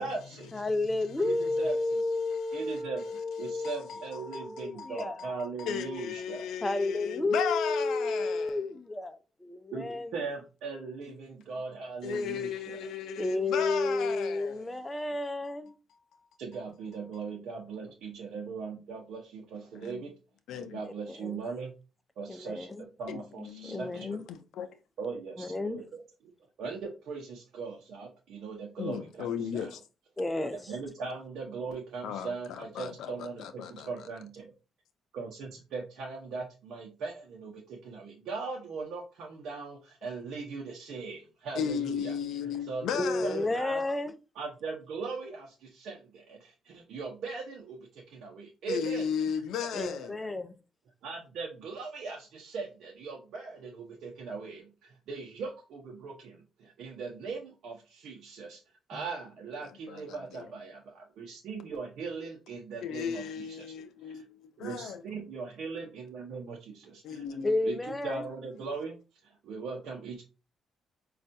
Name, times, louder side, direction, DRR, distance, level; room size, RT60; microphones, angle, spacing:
voice 1, 0.0-0.5 1.2-1.8 2.5-3.0 3.4-6.5 9.7-12.9 16.4-20.1 20.5-21.7 22.2-24.3 25.0-26.3 26.6-29.7 30.7-34.5 35.1-42.2 42.4-42.9 43.2-43.8 44.4-49.1 49.6-49.9 51.0-58.6 58.9-63.7 64.0-64.2 64.6-67.2 67.6-69.0 69.2-70.2, right 4 dB, 75° right, 0.7 m, -39 dB
voice 2, 0.5-5.2 6.6-10.1 13.2-15.7 21.1-21.4 22.3-22.8 23.6-24.2 25.4-25.8 30.2-30.7 42.9-44.1 49.7-50.6 58.9-59.0 67.4-68.2, left 2 dB, 15° left, 0.5 m, -31 dB
voice 3, 3.6-4.0 4.3-4.5 4.8-8.6 12.0-14.6 19.8-19.9 20.5-20.8 23.1-24.7 28.8-29.8 32.0-33.9 41.6-43.5 48.7-50.1 59.9-60.5 62.8-65.0 67.0-67.5, left 7 dB, 80° left, 0.4 m, -35 dB
5.3 x 2.4 x 2.6 m
cardioid pair, 90°, 0 cm